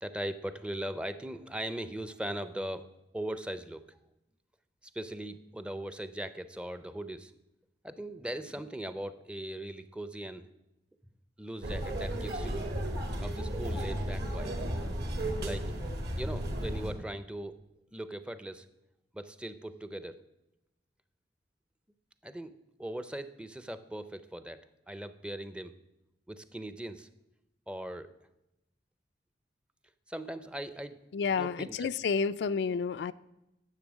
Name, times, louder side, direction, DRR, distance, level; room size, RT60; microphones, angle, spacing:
voice 1, 0.0-2.9 3.1-4.0 4.9-7.3 7.8-10.5 11.4-12.7 13.2-14.6 15.4-15.7 16.2-17.6 17.9-18.7 19.1-20.2 22.2-22.5 22.8-24.6 24.9-25.7 26.3-27.1 27.7-28.1 30.1-31.0 31.4-31.9, right 1 dB, 5° right, 0.5 m, -39 dB
sound 1, 11.6-16.9, right 1 dB, 65° right, 1.8 m, -34 dB
voice 2, 31.1-33.1, left 5 dB, 70° left, 0.3 m, -30 dB
10.5 x 7.1 x 6.1 m
head